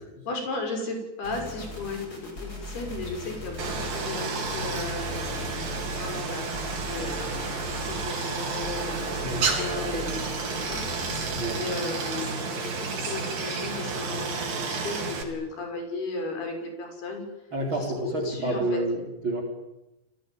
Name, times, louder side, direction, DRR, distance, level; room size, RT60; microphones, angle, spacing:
voice 1, 0.0-11.0 11.5-12.5 12.8-17.2 18.0-18.8, left 3 dB, 80° left, 4 dB, 8.3 m, -35 dB
sound 1, 1.2-11.5, left 1 dB, 20° left, 7.3 m, -39 dB
Stream, 3.6-15.2, right 4 dB, 60° right, 5.7 m, -31 dB
voice 2, 9.2-9.5 11.3-11.8 17.5-19.4, right 2 dB, 30° right, 3 dB, 5.4 m, -30 dB
30.0 x 20.0 x 9.4 m, 0.94 s
omnidirectional pair, 4.5 m